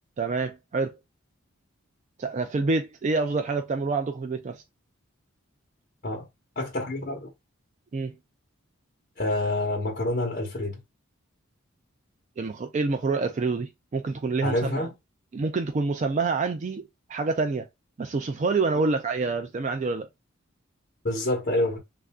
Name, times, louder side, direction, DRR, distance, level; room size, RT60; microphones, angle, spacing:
voice 1, 0.2-1.0 2.2-4.6 7.9-8.1 12.4-14.9 15.3-16.8 17.1-17.7 18.0-20.1, right 3 dB, 35° right, 0.3 m, -27 dB
voice 2, 6.6-7.3 9.2-10.8 14.4-14.9 21.0-21.8, left 1 dB, 40° left, 1.0 m, -27 dB
3.3 x 2.5 x 3.4 m
head